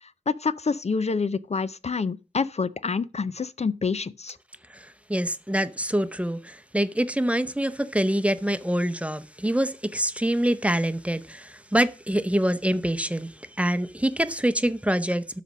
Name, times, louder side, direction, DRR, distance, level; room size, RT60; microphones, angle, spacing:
voice 1, 0.3-4.3, left 4 dB, 55° left, 0.5 m, -27 dB
voice 2, 4.7-15.4, right 1 dB, 10° right, 0.7 m, -25 dB
12.5 x 4.2 x 6.1 m
wide cardioid pair, 65°, 13 cm